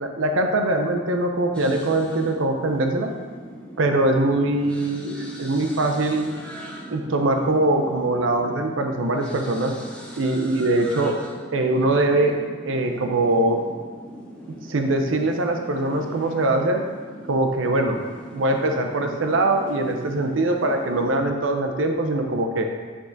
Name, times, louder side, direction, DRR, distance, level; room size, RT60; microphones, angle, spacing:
voice 1, 0.0-3.1 3.8-6.3 6.9-9.7 10.2-11.1 11.5-12.4 12.7-13.6 14.7-16.8 17.3-18.0 18.3-22.7, right 2 dB, 65° right, 3 dB, 0.6 m, -22 dB
sound 1, 1.5-21.2, equal, 5° left, 0.8 m, -40 dB
8.4 x 3.7 x 3.9 m, 1.5 s
head